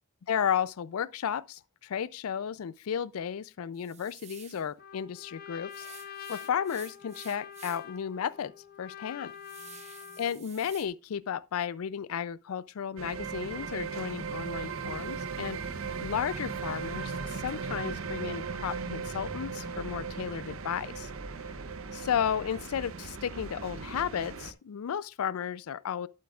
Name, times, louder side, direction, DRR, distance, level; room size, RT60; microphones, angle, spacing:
voice 1, 0.3-5.9 6.3-8.5 8.8-9.3 10.2-15.6 16.0-21.1 21.9-26.1, left 8 dB, 80° left, 0.4 m, -33 dB
sound 1, 3.7-4.7 5.7-8.0 8.4-8.5 9.0-10.9, right 8 dB, 30° right, 0.9 m, -51 dB
Trumpet, 4.8-10.4, left 9 dB, 45° left, 0.8 m, -46 dB
sound 2, 13.0-24.5, right 5 dB, 70° right, 0.7 m, -37 dB
11.5 x 7.8 x 2.4 m
head